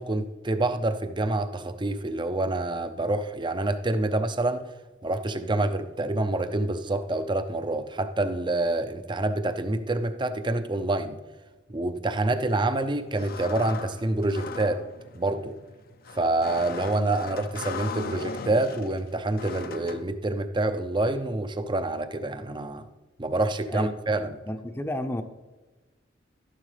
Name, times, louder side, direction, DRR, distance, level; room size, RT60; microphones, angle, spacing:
voice 1, 0.0-4.7 5.0-11.2 11.7-14.8 15.1-15.6 16.1-22.9 23.2-24.4, right 2 dB, 25° right, 10 dB, 0.6 m, -27 dB
sound 1, 12.3-20.0, left 5 dB, 55° left, 0.6 m, -39 dB
voice 2, 23.7-25.2, left 1 dB, 15° left, 7 dB, 0.7 m, -32 dB
12.5 x 11.0 x 3.3 m, 1.2 s
head